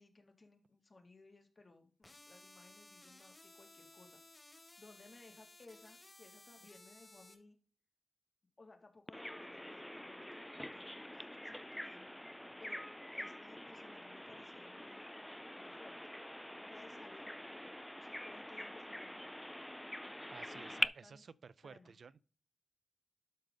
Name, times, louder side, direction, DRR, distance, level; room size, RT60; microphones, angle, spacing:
voice 1, 0.0-4.2 4.8-7.6 8.6-12.1 12.6-12.8 13.1-15.2 15.6-16.0 16.7-17.3 17.9-19.2 20.4-21.2 21.6-22.0, left 3 dB, 45° left, 2.1 m, -60 dB
sound 1, 2.0-7.3, left 2 dB, 25° left, 2.3 m, -59 dB
Bird vocalization bird call bird song, 9.1-20.9, left 1 dB, 5° left, 0.4 m, -45 dB
voice 2, 20.3-22.2, right 5 dB, 75° right, 0.4 m, -54 dB
12.0 x 5.3 x 3.9 m
wide cardioid pair, 85°, 0 cm